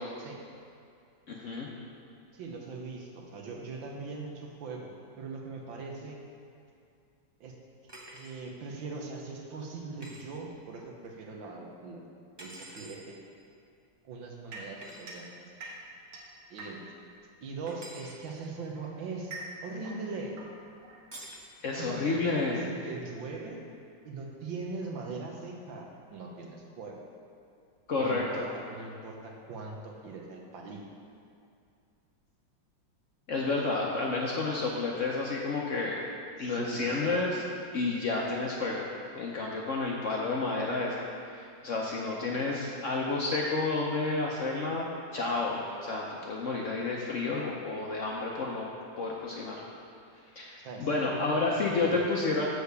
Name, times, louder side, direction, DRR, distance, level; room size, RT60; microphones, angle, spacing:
voice 1, 1.3-1.7 21.6-22.6 27.9-28.4 33.3-36.0 36.4-37.4 37.7-38.9 39.1-41.0 41.3-48.7 49.0-49.6 50.4-52.5, left 3 dB, 60° left, -2 dB, 0.8 m, -30 dB
voice 2, 2.3-4.9 5.2-6.2 7.4-7.5 8.1-12.0 12.4-13.2 14.0-15.5 16.5-16.8 17.4-19.3 19.6-20.3 21.8-22.3 22.6-23.6 24.0-27.0 28.0-30.8 36.4-37.2 50.6-51.4 51.8-52.2, right 3 dB, 80° right, 0 dB, 1.7 m, -41 dB
sound 1, 7.9-8.4 10.0-10.2 12.4-13.0 14.8-15.0 17.7-18.2 21.1-21.5, right 1 dB, 35° right, 0.4 m, -47 dB
sound 2, 14.5-17.1 18.1-21.5, right 2 dB, 65° right, 1.6 m, -46 dB
6.7 x 4.8 x 6.7 m, 2.4 s
omnidirectional pair, 2.1 m